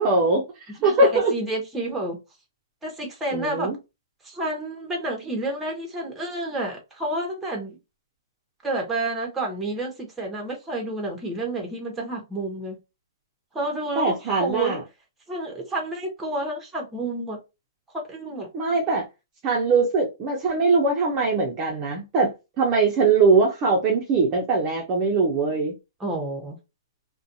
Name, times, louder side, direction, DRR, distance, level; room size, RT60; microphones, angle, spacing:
voice 1, 0.0-1.3 3.3-3.8 14.0-14.8 18.5-19.0 19.4-22.3 22.6-25.7, right 3 dB, 25° right, 0.6 m, -21 dB
voice 2, 0.8-2.2 2.8-3.7 4.2-7.8 8.6-12.8 13.5-14.8 15.3-17.4 18.1-18.5 26.0-26.6, right 2 dB, 10° right, 0.9 m, -30 dB
2.5 x 2.2 x 2.6 m
hypercardioid pair, 145°, 2 cm